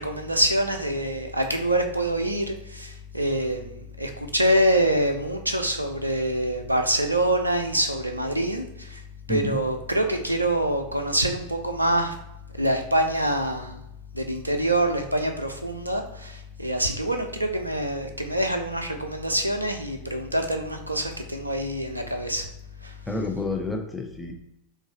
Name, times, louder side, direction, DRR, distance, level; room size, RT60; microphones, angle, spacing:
voice 1, 0.0-9.0 9.3-12.1 12.6-13.8 14.1-22.5 22.8-22.9, right 1 dB, 85° right, 5 dB, 0.6 m, -25 dB
voice 2, 9.3-9.6 23.1-24.3, left 2 dB, 5° left, 1 dB, 0.7 m, -29 dB
3.9 x 2.6 x 3.9 m, 0.85 s
figure-of-eight pair, 90°, 0 cm